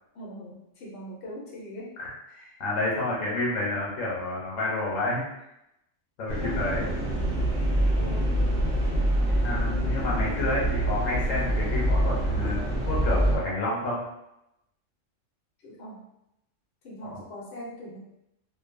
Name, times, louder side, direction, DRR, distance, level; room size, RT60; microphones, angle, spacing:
voice 1, 0.1-1.9 2.3-2.6 6.4-7.5 7.9-8.4 8.7-8.9 9.3-9.5 15.6-16.1 16.8-18.0, equal, 60° left, -4 dB, 0.9 m, -41 dB
voice 2, 2.6-5.2 6.2-6.8 9.4-14.0, left 2 dB, 85° left, -4 dB, 1.2 m, -29 dB
sound 1, 6.3-13.4, right 1 dB, 55° right, 0.8 m, -25 dB
2.7 x 2.2 x 2.5 m, 0.84 s
omnidirectional pair, 1.3 m